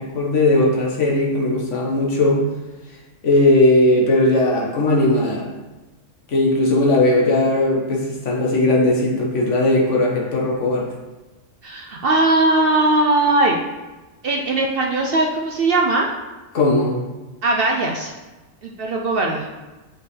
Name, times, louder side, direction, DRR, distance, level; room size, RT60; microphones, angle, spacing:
voice 1, 0.0-2.4 3.2-5.5 6.3-10.9 16.5-17.0, left 2 dB, 65° left, -2 dB, 1.5 m, -18 dB
voice 2, 11.6-13.6 14.2-16.1 17.4-18.1 18.6-19.5, right 2 dB, 60° right, 0 dB, 0.7 m, -19 dB
7.8 x 4.4 x 3.2 m, 1.2 s
omnidirectional pair, 1.4 m